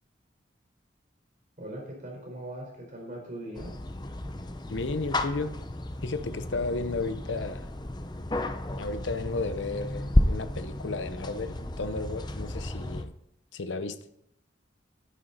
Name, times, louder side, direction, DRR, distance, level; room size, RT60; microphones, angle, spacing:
voice 1, 1.6-3.7, right 1 dB, 45° right, 4.6 m, -40 dB
sound 1, 3.5-13.0, left 1 dB, 25° left, 0.7 m, -32 dB
voice 2, 4.7-5.6 6.0-7.7 8.8-13.1 13.5-14.0, left 3 dB, 90° left, 0.8 m, -33 dB
11.0 x 9.7 x 4.2 m
head